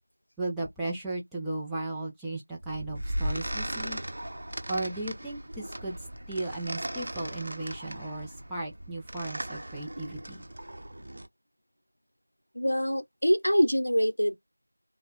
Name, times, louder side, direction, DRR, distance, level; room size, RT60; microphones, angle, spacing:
voice 1, 0.4-4.0 4.7-6.0 6.3-10.4, right 2 dB, ahead, 0.4 m, -35 dB
sound 1, 2.6-11.3, right 1 dB, 45° right, 0.8 m, -37 dB
voice 2, 12.5-14.4, equal, 75° left, 0.7 m, -25 dB
3.9 x 2.1 x 3.5 m
figure-of-eight pair, 175°, 0 cm